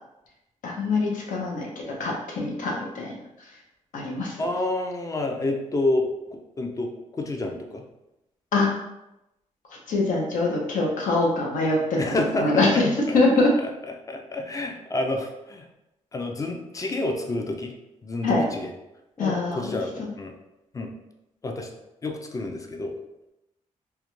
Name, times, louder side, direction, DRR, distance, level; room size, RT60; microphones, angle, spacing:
voice 1, 0.6-3.2 3.9-4.4 8.5-8.7 9.9-12.0 12.4-13.5 18.2-18.4 19.2-19.7 20.0-20.1, left 2 dB, 75° left, -2 dB, 0.6 m, -24 dB
voice 2, 4.4-7.8 12.0-12.7 13.1-13.2 14.1-15.7 16.1-17.7 18.0-18.7 19.2-20.3 20.7-20.9 21.4-21.7 22.0-22.9, left 2 dB, 25° left, 3 dB, 0.4 m, -29 dB
2.3 x 2.1 x 3.0 m, 0.91 s
cardioid pair, 95°, 13 cm